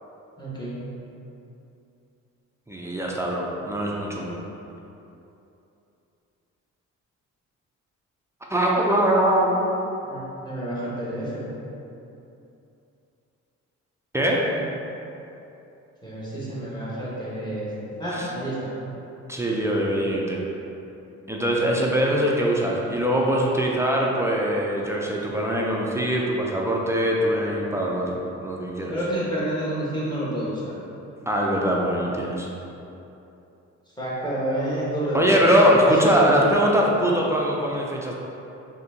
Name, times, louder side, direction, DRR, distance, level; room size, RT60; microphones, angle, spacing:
voice 1, 0.4-0.8 10.0-11.4 16.0-17.7 18.0-18.7 28.9-30.7 34.0-35.2 35.8-36.4, right 1 dB, 15° left, -8 dB, 1.2 m, -29 dB
voice 2, 2.7-4.4 8.5-9.6 14.1-14.7 18.1-18.3 19.3-20.4 21.3-28.9 31.3-32.5 35.1-38.1, equal, 10° right, -3 dB, 0.4 m, -22 dB
4.1 x 2.8 x 2.7 m, 2.9 s
cardioid pair, 90°, 30 cm